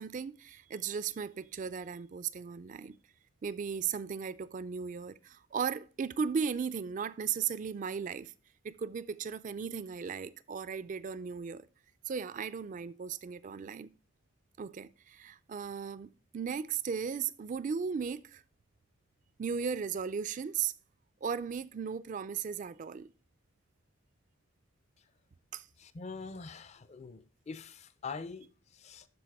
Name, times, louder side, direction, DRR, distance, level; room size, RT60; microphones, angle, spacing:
voice 1, 0.0-3.0 3.4-8.3 8.6-11.7 12.1-13.9 14.6-18.4 19.4-20.7 21.2-23.1 25.5-25.7, right 6 dB, 35° right, 0.3 m, -36 dB
voice 2, 25.8-29.1, left 4 dB, 30° left, 0.4 m, -44 dB
12.0 x 4.6 x 3.5 m
head